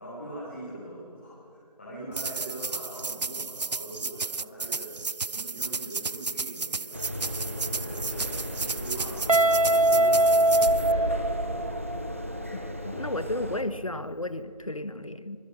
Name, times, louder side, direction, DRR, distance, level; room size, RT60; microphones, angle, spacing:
voice 1, 0.0-5.0 5.3-7.0 7.4-8.3 8.6-12.1, right 1 dB, 20° left, -9 dB, 3.7 m, -42 dB
sound 1, 2.1-10.9, right 4 dB, 80° right, 0.5 m, -33 dB
sound 2, 6.9-13.6, equal, 20° right, 1.0 m, -35 dB
Guitar, 9.3-12.1, right 1 dB, 60° right, 0.8 m, -22 dB
voice 2, 12.8-15.4, left 1 dB, 55° left, 14 dB, 1.2 m, -33 dB
24.5 x 23.0 x 6.0 m, 2.5 s
figure-of-eight pair, 170°, 21 cm